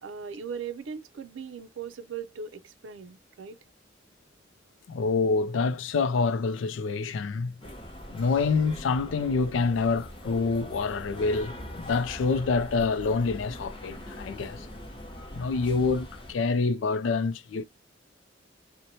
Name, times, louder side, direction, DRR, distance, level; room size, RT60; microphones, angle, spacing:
voice 1, 0.0-3.6, right 6 dB, 80° right, 0.4 m, -39 dB
voice 2, 4.9-7.5 8.1-14.7 15.3-17.6, left 4 dB, 80° left, 0.4 m, -27 dB
sound 1, 7.6-16.3, equal, 25° left, 0.7 m, -42 dB
2.8 x 2.1 x 2.6 m
head